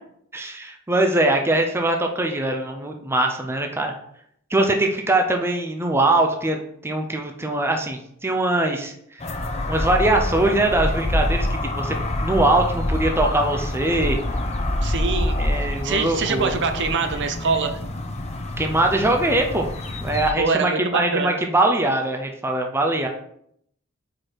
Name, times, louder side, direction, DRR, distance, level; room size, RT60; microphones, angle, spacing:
voice 1, 0.3-4.0 4.5-8.9 9.7-14.2 15.4-16.5 18.6-19.7 20.0-23.1, right 2 dB, 10° right, 3 dB, 0.5 m, -22 dB
sound 1, 9.2-20.3, left 1 dB, 30° left, 0.6 m, -26 dB
voice 2, 14.8-17.8 20.4-21.4, right 4 dB, 55° right, 8 dB, 0.6 m, -24 dB
4.8 x 4.6 x 4.3 m, 0.71 s
head